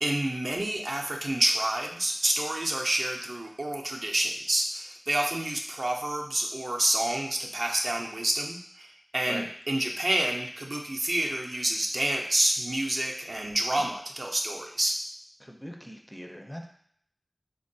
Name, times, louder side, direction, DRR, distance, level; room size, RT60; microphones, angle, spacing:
voice 1, 0.0-15.0, right 1 dB, 65° right, 0 dB, 0.4 m, -28 dB
voice 2, 15.4-16.7, equal, 5° left, 2 dB, 0.4 m, -41 dB
3.5 x 2.2 x 2.6 m, 0.66 s
wide cardioid pair, 55°, 0 cm